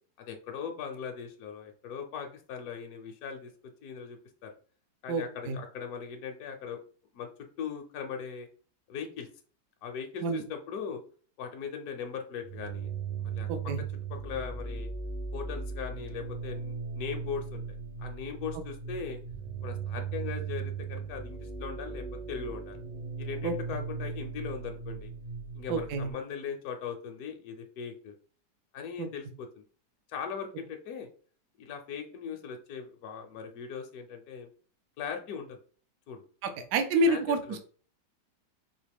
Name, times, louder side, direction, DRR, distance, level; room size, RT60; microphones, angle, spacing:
voice 1, 0.2-3.5 3.8-4.5 5.0-6.8 7.1-7.3 7.6-8.5 8.9-9.3 9.8-11.0 11.4-12.9 13.2-13.5 14.1-14.9 15.3-17.6 18.0-19.2 19.6-22.8 23.2-25.1 25.5-28.1 28.7-29.6 30.1-31.1 31.6-34.5 35.0-35.6 36.1-36.2 37.1-37.6, left 6 dB, 65° left, 4 dB, 1.0 m, -39 dB
voice 2, 5.1-5.6 10.2-10.4 13.5-13.8 23.4-23.5 25.7-26.1 29.0-29.1 36.7-37.6, right 2 dB, 75° right, 7 dB, 1.2 m, -28 dB
sound 1, 12.4-26.1, right 5 dB, 40° right, 0.6 m, -38 dB
4.8 x 2.8 x 3.4 m, 0.42 s
omnidirectional pair, 1.8 m